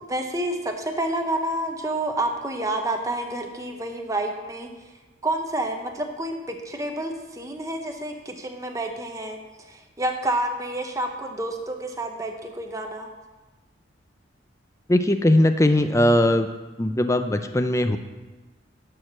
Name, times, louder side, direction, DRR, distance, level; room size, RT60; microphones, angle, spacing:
voice 1, 0.1-4.7 5.2-9.4 9.7-13.1, right 1 dB, 15° right, 4 dB, 0.8 m, -29 dB
voice 2, 14.9-16.5 16.8-18.0, left 1 dB, 15° left, 8 dB, 0.4 m, -19 dB
10.5 x 4.8 x 6.1 m, 1.2 s
head